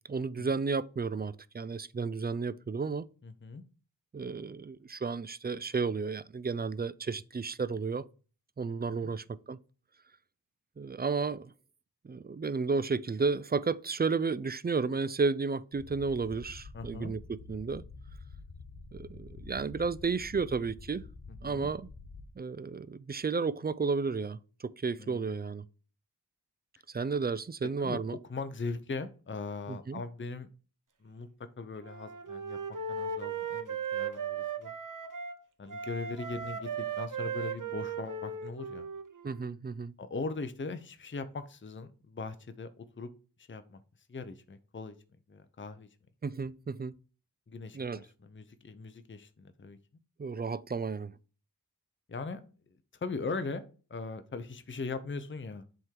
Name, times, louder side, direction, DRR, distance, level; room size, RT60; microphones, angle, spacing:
voice 1, 0.1-3.1 4.1-8.0 8.6-9.6 10.8-11.5 12.0-17.8 18.9-21.1 21.4-21.9 22.4-25.6 26.9-28.2 29.7-30.0 39.2-39.9 46.2-46.9 47.7-48.0 50.2-51.1, right 4 dB, 25° right, 0.4 m, -32 dB
voice 2, 3.2-3.6 8.7-9.1 16.7-17.1 21.4-21.7 25.0-25.5 27.6-30.5 31.0-31.3 31.6-34.7 35.6-38.9 40.0-43.1 43.4-43.8 44.1-44.9 45.3-45.9 47.5-49.8 52.1-52.4 52.7-55.6, left 4 dB, 30° left, 0.7 m, -40 dB
sound 1, 15.7-22.2, left 4 dB, 75° left, 1.3 m, -48 dB
Wind instrument woodwind instrument, 31.8-35.4 35.7-39.5, right 6 dB, 50° right, 0.9 m, -37 dB
7.7 x 3.7 x 4.5 m
cardioid pair, 45°, 39 cm